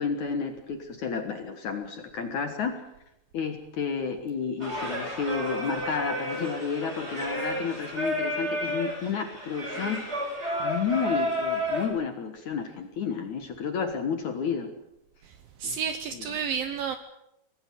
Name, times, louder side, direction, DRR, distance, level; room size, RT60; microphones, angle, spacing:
voice 1, 0.0-2.8 3.3-10.1 10.6-14.7 15.6-15.8 16.1-16.2, left 6 dB, 60° left, 6 dB, 2.2 m, -31 dB
Singing, 4.6-11.8, equal, 15° right, 5.8 m, -31 dB
voice 2, 15.6-17.0, right 7 dB, 75° right, 10 dB, 2.2 m, -31 dB
24.5 x 18.0 x 7.7 m, 0.86 s
omnidirectional pair, 5.1 m